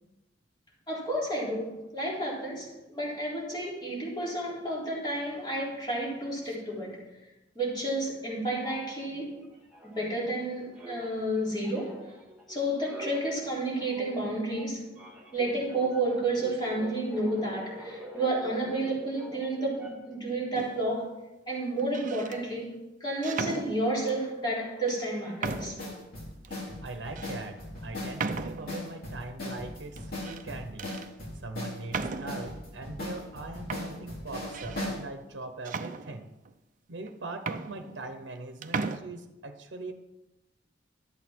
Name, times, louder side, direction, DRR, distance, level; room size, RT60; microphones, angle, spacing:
voice 1, 0.9-7.0 7.6-9.4 9.8-12.1 12.5-14.9 15.3-21.2 21.5-25.8, right 1 dB, 25° left, -6 dB, 3.8 m, -31 dB
sound 1, 8.6-10.4 10.7-20.2, equal, 5° right, 2.2 m, -47 dB
sound 2, 20.5-21.0 21.8-22.4 23.2-24.2 24.9-25.0 25.4-25.9 26.4-26.5 27.2-27.3 28.2-28.8 30.0-30.5 30.8-31.1 31.9-32.5 33.3-33.4 33.7-34.9 35.6-36.5 37.1-37.2 37.4-38.4 38.6-39.0, right 4 dB, 45° right, 0.6 m, -36 dB
sound 3, 25.4-35.0, left 1 dB, 55° left, 3.3 m, -38 dB
voice 2, 26.5-30.9 31.4-36.3 36.9-39.9, right 2 dB, 70° right, 6 dB, 0.9 m, -41 dB
12.0 x 8.3 x 4.5 m, 0.97 s
head